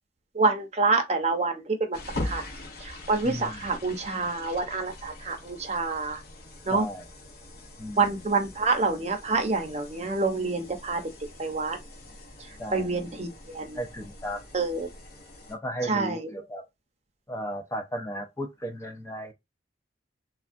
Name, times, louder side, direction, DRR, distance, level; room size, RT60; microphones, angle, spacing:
voice 1, 0.3-2.4 2.8-6.2 6.7-6.9 8.0-11.0 11.4-11.8 12.7-13.8 14.5-14.9 15.8-16.3, right 3 dB, 35° right, 0.7 m, -27 dB
sound 1, 1.9-15.6, left 1 dB, 55° left, 0.8 m, -42 dB
voice 2, 3.2-3.8 6.7-7.1 7.8-8.1 12.6-12.9 13.7-14.4 15.5-16.7 17.3-19.3, equal, 15° left, 0.4 m, -35 dB
3.3 x 2.3 x 2.5 m
head